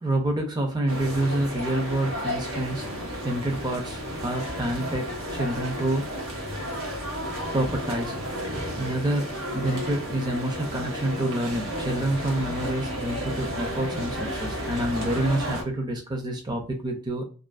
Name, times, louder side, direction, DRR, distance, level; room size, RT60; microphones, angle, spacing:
voice 1, 0.0-6.4 7.5-8.3 8.8-17.2, right 1 dB, 20° right, 0.4 m, -28 dB
sound 1, 0.9-15.6, equal, 85° right, 0.8 m, -32 dB
2.4 x 2.2 x 2.3 m
head